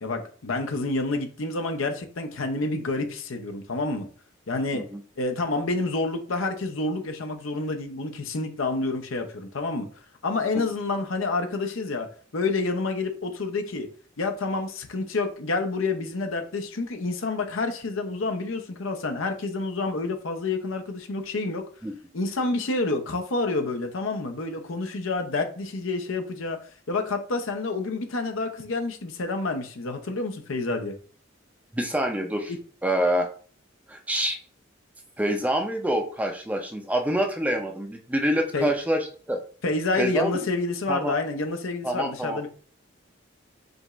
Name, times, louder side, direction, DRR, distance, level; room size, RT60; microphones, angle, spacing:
voice 1, 0.0-4.1 4.5-4.8 5.2-9.9 10.2-12.1 12.3-13.9 14.2-21.6 22.1-26.6 26.9-31.0 32.5-32.6 38.5-38.7 39.6-42.5, left 3 dB, 80° left, 0.7 m, -28 dB
voice 2, 31.7-32.5 32.8-33.3 33.9-34.4 35.2-39.4 40.0-40.5 40.9-41.1 41.8-42.4, right 1 dB, 5° right, 0.5 m, -26 dB
5.0 x 2.5 x 3.0 m
head